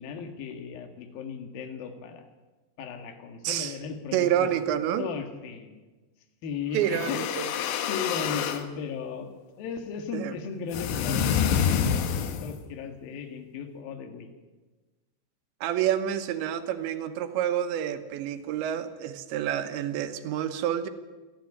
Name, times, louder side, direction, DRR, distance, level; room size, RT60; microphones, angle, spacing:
voice 1, 0.0-2.3 2.8-4.5 5.0-5.8 6.4-7.3 7.9-14.3, left 6 dB, 60° left, 6 dB, 3.3 m, -36 dB
voice 2, 3.4-3.8 4.1-5.1 6.7-7.5 10.1-10.4 15.6-20.9, right 11 dB, 80° right, 9 dB, 3.4 m, -28 dB
sound 1, 6.8-8.7 10.7-12.6, left 8 dB, 75° left, 3.4 m, -27 dB
26.5 x 10.0 x 10.0 m, 1.2 s
omnidirectional pair, 5.3 m